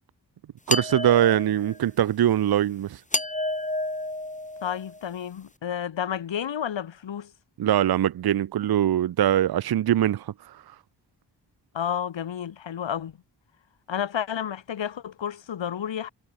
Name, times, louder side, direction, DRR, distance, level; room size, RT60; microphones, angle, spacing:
sound 1, 0.7-1.8 3.1-5.0, left 1 dB, 15° left, 5.9 m, -30 dB
voice 1, 0.7-3.0 7.6-10.8, right 11 dB, 55° right, 0.7 m, -22 dB
voice 2, 4.6-7.3 11.7-13.1 13.9-16.1, left 9 dB, 80° left, 3.4 m, -31 dB
cardioid pair, 50°, 45 cm